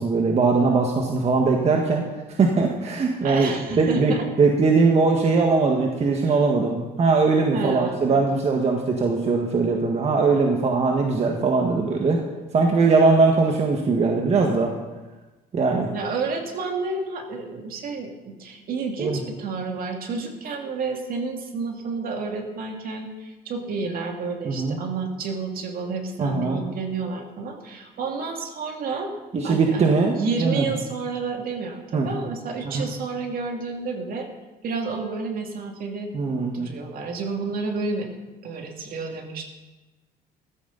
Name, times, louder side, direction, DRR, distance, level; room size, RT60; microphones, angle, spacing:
voice 1, 0.0-2.0 2.4-12.2 12.5-14.7 15.5-15.9 19.0-19.2 24.4-24.8 26.2-26.6 29.3-30.7 31.9-32.1 32.6-32.9 36.1-36.7, right 4 dB, 40° right, 1 dB, 1.6 m, -21 dB
voice 2, 3.2-4.2 6.2-6.5 7.5-8.2 15.9-29.1 29.4-29.9 30.1-34.3 34.6-36.1 36.5-38.1 38.4-39.4, right 4 dB, 60° right, 2 dB, 2.5 m, -30 dB
15.0 x 13.0 x 4.0 m, 1.1 s
cardioid pair, 110°, 17 cm